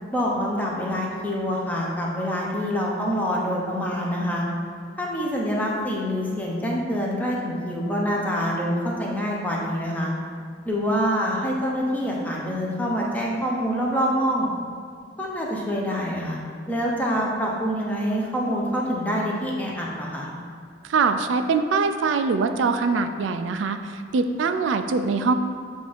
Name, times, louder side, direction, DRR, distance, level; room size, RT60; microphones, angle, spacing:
voice 1, 0.1-4.4 5.0-10.1 10.6-14.5 15.2-16.4 16.7-20.3, equal, 10° left, -3 dB, 0.8 m, -26 dB
voice 2, 20.8-25.3, right 4 dB, 80° right, 8 dB, 0.3 m, -23 dB
7.4 x 2.6 x 5.1 m, 2.3 s
head